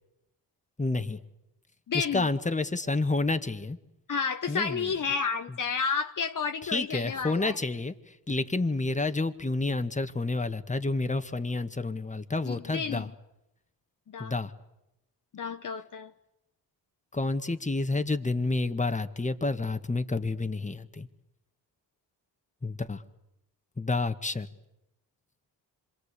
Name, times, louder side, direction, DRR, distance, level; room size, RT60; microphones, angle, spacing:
voice 1, 0.8-1.2 1.9-3.8 4.5-4.9 6.6-13.1 14.2-14.5 17.1-21.1 22.6-23.0 23.8-24.5, left 3 dB, 15° left, 1.7 m, -29 dB
voice 2, 1.9-2.3 4.1-7.6 12.5-13.1 14.1-14.3 15.3-16.1, left 5 dB, 50° left, 1.0 m, -31 dB
26.0 x 23.5 x 8.4 m
supercardioid pair, 55°, 41 cm